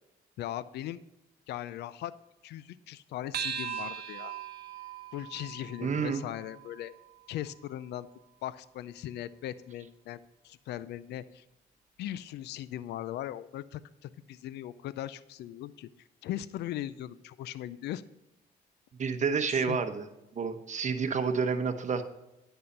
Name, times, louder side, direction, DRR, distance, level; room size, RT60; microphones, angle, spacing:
voice 1, 0.4-1.0 1.5-2.1 2.4-4.3 5.1-6.9 7.3-8.1 8.4-11.4 12.0-15.9 16.2-18.0 19.5-19.8, left 12 dB, 80° left, 16 dB, 0.4 m, -39 dB
sound 1, 3.3-8.1, right 8 dB, 70° right, 0.9 m, -40 dB
voice 2, 5.8-6.3 19.0-20.1 20.3-22.0, right 5 dB, 45° right, 8 dB, 1.1 m, -29 dB
10.0 x 5.6 x 5.5 m, 0.93 s
cardioid pair, 80°, 17 cm